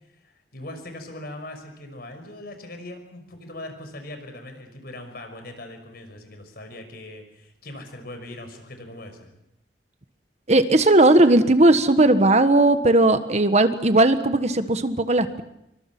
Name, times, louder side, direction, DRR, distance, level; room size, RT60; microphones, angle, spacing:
voice 1, 0.2-9.4, left 1 dB, 60° left, 6 dB, 5.7 m, -40 dB
voice 2, 10.5-15.4, right 2 dB, 40° right, 10 dB, 1.4 m, -17 dB
26.5 x 24.0 x 6.1 m, 0.82 s
head